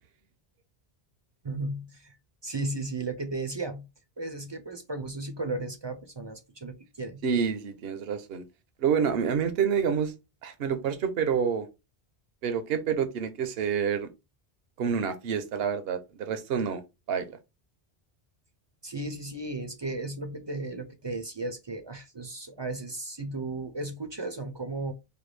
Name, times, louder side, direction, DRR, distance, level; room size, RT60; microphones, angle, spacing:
voice 1, 1.4-2.2 2.4-3.9 4.2-7.2 18.8-24.9, right 2 dB, 35° right, 0.4 m, -35 dB
voice 2, 7.2-8.4 8.8-10.1 10.4-11.7 12.4-14.1 14.8-16.8 17.1-17.4, right 7 dB, 75° right, 0.9 m, -28 dB
5.0 x 2.3 x 3.2 m
omnidirectional pair, 1.0 m